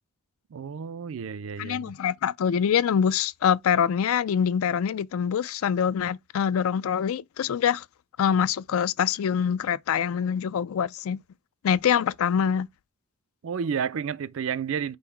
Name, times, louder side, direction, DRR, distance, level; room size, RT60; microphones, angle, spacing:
voice 1, 0.5-1.9 13.4-15.0, right 7 dB, 65° right, 0.4 m, -31 dB
voice 2, 1.6-7.8 8.2-11.2 11.6-12.7, left 8 dB, 70° left, 0.3 m, -24 dB
5.4 x 2.1 x 4.4 m
head